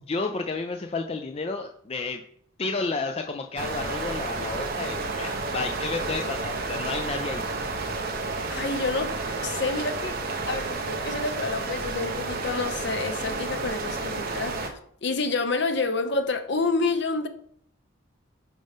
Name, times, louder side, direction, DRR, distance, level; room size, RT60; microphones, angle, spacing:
voice 1, 0.1-2.2 2.6-7.5, left 3 dB, 30° left, 0.4 m, -31 dB
sound 1, 3.6-14.7, right 3 dB, 45° right, 1.0 m, -31 dB
voice 2, 8.5-9.1 9.4-10.2 10.4-17.3, left 3 dB, 55° left, 0.8 m, -28 dB
9.1 x 5.2 x 3.6 m
head